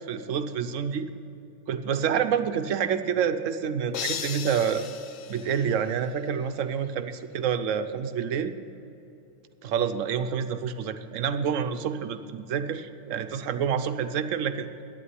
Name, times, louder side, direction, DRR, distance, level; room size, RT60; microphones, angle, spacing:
voice 1, 0.1-1.1 1.7-4.8 5.3-8.5 9.6-14.7, right 7 dB, 80° right, 10 dB, 1.1 m, -28 dB
sound 1, 3.9-6.3, left 8 dB, 85° left, 1.1 m, -36 dB
11.5 x 9.4 x 9.6 m, 2.7 s
omnidirectional pair, 1.3 m